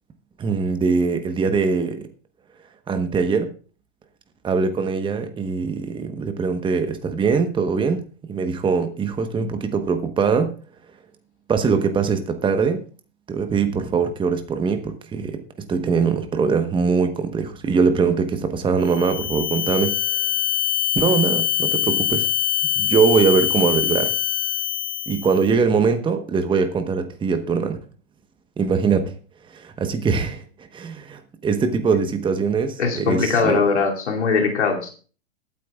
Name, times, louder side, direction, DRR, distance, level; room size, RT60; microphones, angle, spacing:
voice 1, 0.4-2.1 2.9-3.5 4.4-10.6 11.5-12.8 13.3-15.4 15.7-20.0 20.9-22.3 22.6-24.1 25.1-27.8 28.6-29.1 29.5-33.6, right 5 dB, 15° right, 1.1 m, -22 dB
sound 1, 18.8-25.4, left 12 dB, 60° left, 3.9 m, -23 dB
voice 2, 32.8-34.9, left 4 dB, 80° left, 2.8 m, -20 dB
21.0 x 9.0 x 2.4 m
hypercardioid pair, 110°, 34 cm